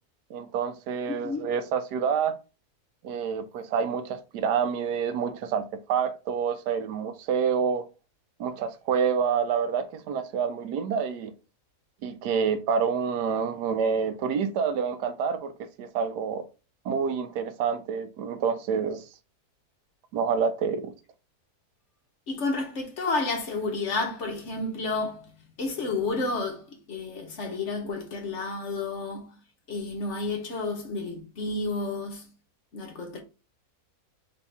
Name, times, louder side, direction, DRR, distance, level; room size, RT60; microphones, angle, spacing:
voice 1, 0.3-2.3 3.0-7.8 8.4-11.3 12.0-16.4 16.8-19.1 20.1-20.9, right 6 dB, 85° right, 1.2 m, -28 dB
voice 2, 22.3-25.3 25.6-29.4 29.7-32.3 32.7-33.2, left 3 dB, 55° left, 1.0 m, -31 dB
3.5 x 3.4 x 4.1 m
omnidirectional pair, 1.7 m